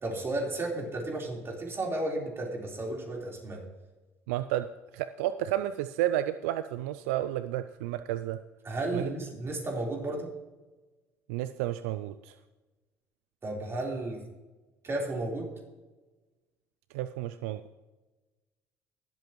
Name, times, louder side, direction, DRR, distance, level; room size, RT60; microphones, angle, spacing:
voice 1, 0.0-3.6 8.6-10.3 13.4-14.2 14.8-15.5, right 2 dB, 35° right, -1 dB, 4.1 m, -33 dB
voice 2, 4.3-4.7 4.9-8.4 8.9-9.1 11.3-12.3 16.9-17.8, right 13 dB, 80° right, 12 dB, 0.4 m, -31 dB
21.0 x 7.9 x 3.1 m, 1.2 s
hypercardioid pair, 65°, 7 cm